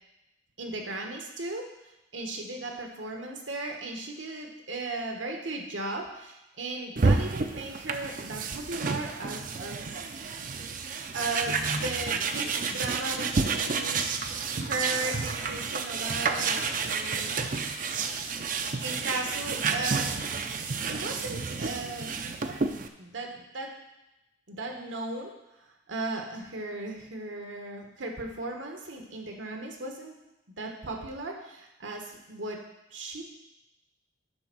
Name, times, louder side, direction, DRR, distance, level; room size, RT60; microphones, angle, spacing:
voice 1, 0.6-1.7 2.1-10.0 11.1-14.0 14.5-17.5 18.8-20.1 20.9-22.2 22.8-23.7 24.5-25.3 25.9-30.2 30.6-32.6 32.9-33.2, right 2 dB, 75° right, 2 dB, 1.3 m, -36 dB
sound 1, 7.0-22.9, right 4 dB, 45° right, 0.5 m, -30 dB
10.5 x 3.5 x 6.1 m, 0.94 s
head